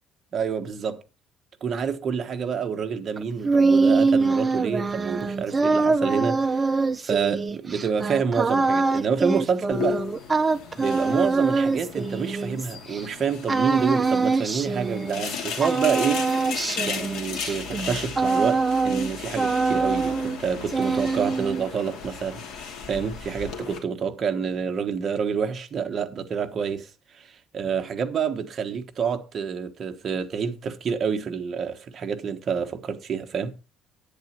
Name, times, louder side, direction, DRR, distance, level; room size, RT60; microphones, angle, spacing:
voice 1, 0.3-1.0 1.6-6.7 7.0-10.0 10.8-16.3 16.9-26.9 27.2-27.3 27.5-33.5, right 6 dB, 35° right, 1.2 m, -28 dB
sound 1, 3.2-13.0 13.5-15.4 15.6-19.1 19.4-20.4 20.7-21.7, right 4 dB, 15° right, 0.6 m, -24 dB
sound 2, 9.7-23.8, left 6 dB, 70° left, 2.7 m, -36 dB
10.5 x 9.1 x 4.4 m
cardioid pair, 165°, 0 cm